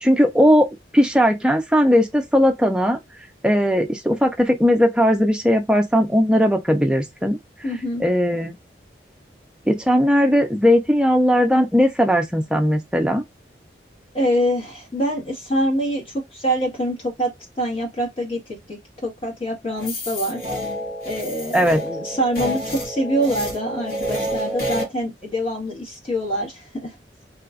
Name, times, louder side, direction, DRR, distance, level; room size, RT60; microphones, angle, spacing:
voice 1, 0.0-0.7 0.9-3.0 3.4-7.4 8.0-8.6 9.7-13.2 21.5-21.8, equal, 5° right, 0.5 m, -18 dB
voice 2, 7.6-8.0 14.1-17.3 17.6-20.4 21.0-26.9, equal, 30° left, 1.6 m, -25 dB
sound 1, 19.8-24.9, equal, 50° left, 1.4 m, -29 dB
3.3 x 2.9 x 2.5 m
head